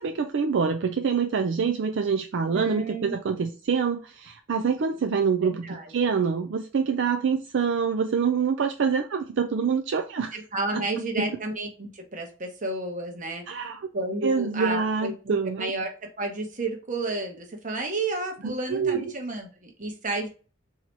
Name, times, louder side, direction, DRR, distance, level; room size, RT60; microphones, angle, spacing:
voice 1, 0.0-10.4 10.7-10.8 11.2-11.3 13.5-13.8 14.2-15.7 18.4-19.1, right 6 dB, 65° right, 5 dB, 0.4 m, -26 dB
voice 2, 2.5-3.1 5.4-5.9 10.3-13.5 13.9-15.9 16.2-20.3, right 2 dB, 40° right, 3 dB, 1.1 m, -31 dB
4.0 x 2.9 x 4.5 m, 0.36 s
head